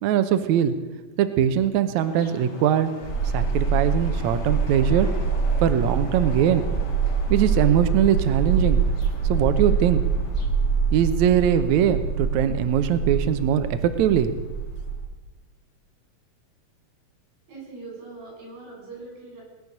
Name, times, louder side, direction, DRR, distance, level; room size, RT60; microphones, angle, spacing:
voice 1, 0.0-0.7 1.2-2.9 3.3-5.1 5.6-6.6 7.3-8.8 9.2-10.0 10.9-14.3, right 9 dB, 85° right, 10 dB, 1.6 m, -21 dB
sound 1, 2.0-10.5, left 3 dB, 45° left, 1.4 m, -42 dB
sound 2, 3.0-15.0, right 5 dB, 15° left, 4.5 m, -25 dB
voice 2, 17.5-19.4, right 3 dB, 65° right, -2 dB, 8.4 m, -41 dB
20.0 x 10.5 x 6.7 m, 1.2 s
omnidirectional pair, 4.6 m